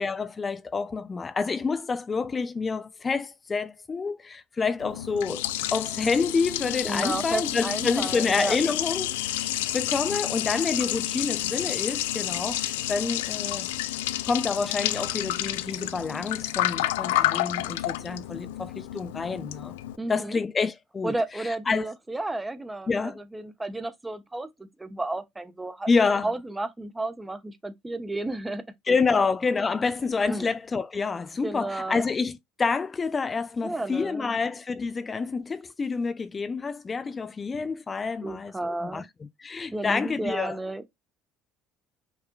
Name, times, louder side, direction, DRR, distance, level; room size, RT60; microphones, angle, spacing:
voice 1, 0.0-5.5 5.7-9.4 9.7-13.7 14.2-19.7 20.1-21.9 22.9-23.2 25.9-26.3 28.9-39.1 39.4-40.6, left 4 dB, 30° left, 0.4 m, -28 dB
Liquid, 4.8-20.0, left 14 dB, 90° left, 0.4 m, -30 dB
voice 2, 6.8-8.6 20.0-20.4 21.0-25.9 26.2-29.2 30.3-30.5 31.4-32.1 33.6-34.4 38.2-39.1 39.7-40.8, right 2 dB, 15° right, 0.9 m, -32 dB
5.6 x 3.4 x 2.3 m
hypercardioid pair, 75°, 0 cm